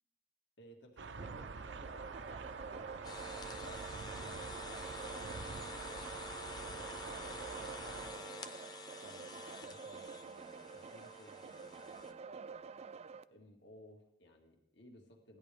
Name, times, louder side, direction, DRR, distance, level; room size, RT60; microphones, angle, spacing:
voice 1, 0.6-4.4 5.0-8.6 9.0-15.4, left 1 dB, 70° left, 2 dB, 1.8 m, -60 dB
sound 1, 1.0-8.1, right 4 dB, 85° right, 0.6 m, -46 dB
sound 2, 1.2-13.2, right 5 dB, 35° right, 0.3 m, -50 dB
sound 3, 3.0-12.1, left 1 dB, 25° left, 0.8 m, -48 dB
16.0 x 11.5 x 3.4 m, 0.86 s
head